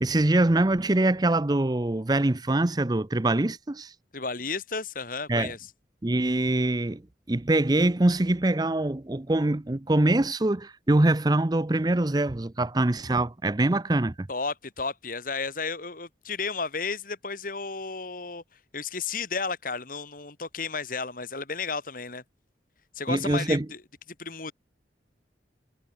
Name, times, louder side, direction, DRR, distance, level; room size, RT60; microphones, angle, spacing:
voice 1, 0.0-3.9 5.3-5.5 6.0-7.0 7.3-14.3 23.1-23.7, right 2 dB, 25° right, 0.6 m, -24 dB
voice 2, 4.1-5.6 14.3-18.4 18.7-22.2 22.9-23.8 24.2-24.5, left 4 dB, 50° left, 2.6 m, -33 dB
head